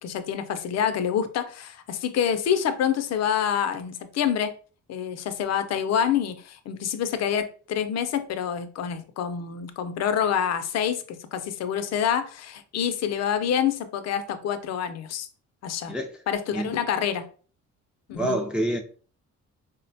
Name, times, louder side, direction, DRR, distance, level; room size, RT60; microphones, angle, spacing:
voice 1, 0.0-4.5 4.9-15.3 15.6-15.9 16.3-17.3 18.1-18.4, left 8 dB, 60° left, 0.5 m, -27 dB
voice 2, 18.1-18.8, right 1 dB, 5° right, 0.4 m, -27 dB
3.6 x 2.1 x 2.6 m
cardioid pair, 90°, 30 cm